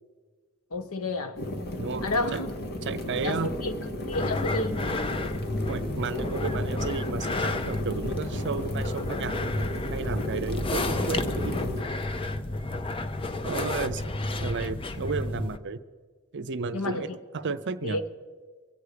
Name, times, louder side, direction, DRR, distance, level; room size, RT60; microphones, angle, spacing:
voice 1, 0.7-1.4 2.0-2.5 3.2-3.7 4.1-4.8 16.7-17.2 17.8-18.0, left 2 dB, 70° left, 0.9 m, -30 dB
sound 1, 0.7-6.7, equal, 5° left, 0.9 m, -47 dB
sound 2, 1.4-11.8, left 1 dB, 45° left, 1.1 m, -33 dB
voice 2, 1.8-2.4 2.8-3.5 5.7-11.6 13.4-15.8 16.3-18.0, right 4 dB, 55° right, 0.6 m, -33 dB
sound 3, 4.1-15.6, left 2 dB, 25° left, 0.5 m, -32 dB
24.0 x 8.2 x 5.0 m
head